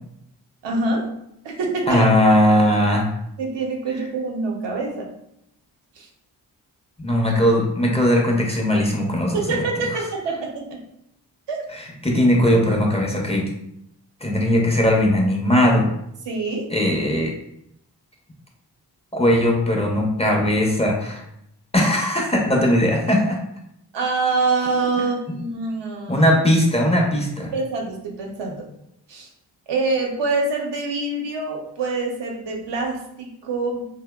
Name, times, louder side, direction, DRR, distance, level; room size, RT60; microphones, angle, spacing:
voice 1, 0.6-1.0 1.4-2.1 3.4-5.1 6.0-6.1 9.3-10.8 11.5-11.6 12.1-12.2 16.3-16.6 23.9-26.3 27.5-28.6 29.1-29.3 29.7-33.9, right 3 dB, 75° right, 0 dB, 0.7 m, -25 dB
voice 2, 1.9-3.1 7.0-9.6 11.7-13.5 14.2-15.9 16.7-17.3 19.1-21.2 21.7-23.4 25.0-25.1 26.1-27.5, left 1 dB, 15° left, 0 dB, 0.6 m, -19 dB
2.7 x 2.0 x 2.2 m, 0.76 s
cardioid pair, 45°, 43 cm